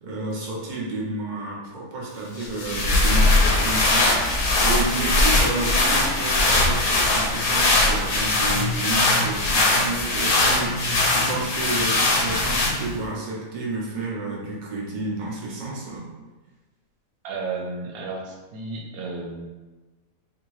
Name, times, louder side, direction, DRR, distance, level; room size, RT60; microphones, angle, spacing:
voice 1, 0.0-16.1, right 2 dB, 50° right, -4 dB, 0.6 m, -31 dB
sound 1, 2.4-13.0, left 2 dB, 80° left, 1.0 m, -21 dB
voice 2, 17.2-19.5, right 3 dB, 90° right, 0 dB, 1.1 m, -33 dB
2.7 x 2.7 x 3.0 m, 1.2 s
omnidirectional pair, 1.5 m